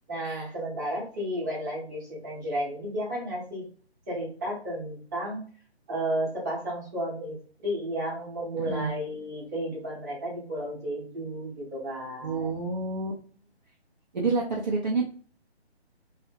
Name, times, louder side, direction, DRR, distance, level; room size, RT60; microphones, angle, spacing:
voice 1, 0.1-3.6 4.1-5.4 5.9-12.5, equal, 15° right, -6 dB, 0.7 m, -33 dB
voice 2, 12.2-13.1 14.1-15.0, right 4 dB, 45° right, -3 dB, 0.5 m, -28 dB
2.4 x 2.0 x 2.5 m, 0.43 s
figure-of-eight pair, 145°, 33 cm